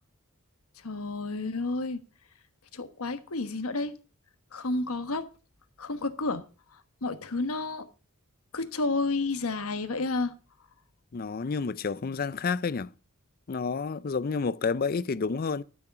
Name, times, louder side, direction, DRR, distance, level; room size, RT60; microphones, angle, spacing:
voice 1, 0.8-2.0 2.7-3.9 4.5-5.3 5.8-6.4 7.0-7.9 8.5-10.3, left 3 dB, 85° left, 1.2 m, -30 dB
voice 2, 11.1-12.9 13.5-15.6, left 5 dB, 45° left, 0.4 m, -30 dB
12.0 x 6.4 x 5.7 m
head